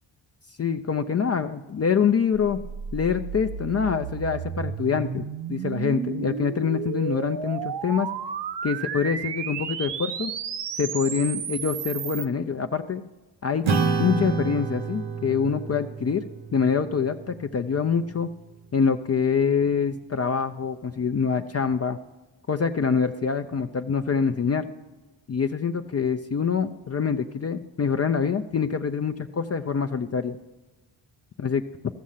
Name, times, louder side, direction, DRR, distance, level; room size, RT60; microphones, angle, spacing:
voice 1, 0.6-2.6 2.9-8.1 8.6-10.3 10.8-13.0 13.4-13.7 14.0-16.3 16.5-18.3 18.7-22.0 22.5-24.7 25.3-30.4 31.4-31.6, left 6 dB, 35° left, 7 dB, 0.5 m, -25 dB
sound 1, 2.3-12.3, right 7 dB, 60° right, 0.8 m, -33 dB
Acoustic guitar / Strum, 13.6-18.4, right 4 dB, 90° right, 1.2 m, -29 dB
15.0 x 6.3 x 5.6 m, 1.2 s
cardioid pair, 95°, 46 cm